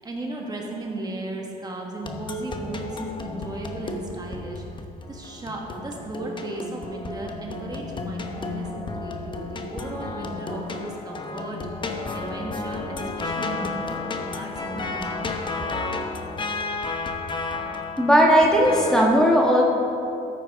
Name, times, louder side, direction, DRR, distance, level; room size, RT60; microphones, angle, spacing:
voice 1, 0.0-4.6 5.1-11.6 12.1-14.0 14.3-15.3 18.4-18.6, right 2 dB, 25° right, -1 dB, 1.5 m, -35 dB
sound 1, 2.0-19.0, left 3 dB, 30° left, 0.9 m, -32 dB
voice 2, 18.0-19.6, equal, 5° left, -2 dB, 1.3 m, -17 dB
13.5 x 9.2 x 3.6 m, 2.7 s
cardioid pair, 110°, 17 cm